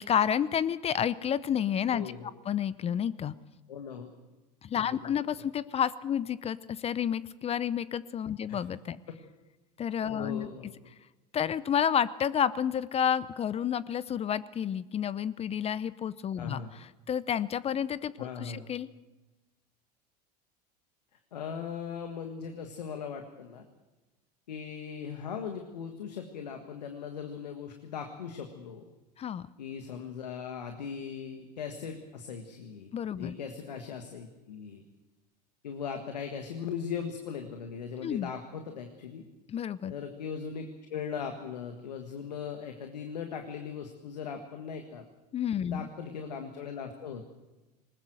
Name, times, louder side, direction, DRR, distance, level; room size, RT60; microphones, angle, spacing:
voice 1, 0.0-2.1 2.5-3.3 4.6-9.0 9.8-10.5 11.3-18.9 29.2-29.5 32.9-33.4 38.0-38.3 39.5-39.9 45.3-45.9, left 8 dB, 30° left, 18 dB, 0.7 m, -30 dB
voice 2, 1.9-2.3 3.7-4.1 5.0-5.1 10.1-10.7 16.4-16.7 18.2-18.6 21.3-23.6 24.5-28.8 29.6-34.8 35.6-39.2 39.9-45.1 45.6-47.3, left 6 dB, 85° left, 5 dB, 1.7 m, -39 dB
20.0 x 20.0 x 7.9 m, 1.1 s
hypercardioid pair, 85°, 21 cm